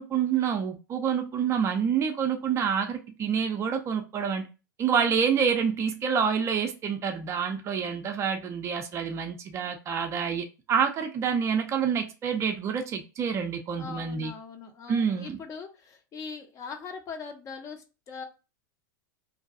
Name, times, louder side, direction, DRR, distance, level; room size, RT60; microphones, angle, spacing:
voice 1, 0.0-4.5 4.8-14.3 14.9-15.4, right 7 dB, 25° right, 0.4 m, -27 dB
voice 2, 13.8-18.2, left 5 dB, 30° left, 0.5 m, -41 dB
2.6 x 2.2 x 2.5 m
figure-of-eight pair, 90°, 11 cm